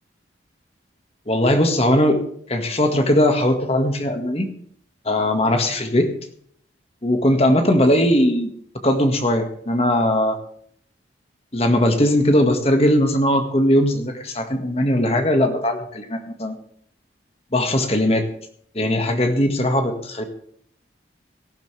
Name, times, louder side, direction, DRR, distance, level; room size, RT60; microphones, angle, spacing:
voice 1, 1.3-2.2 2.5-4.5 5.1-6.1 7.0-8.5 8.8-10.4 11.5-16.6 17.5-18.3 18.8-20.2, left 1 dB, 35° left, 5 dB, 1.8 m, -19 dB
18.5 x 15.0 x 3.4 m, 0.62 s
head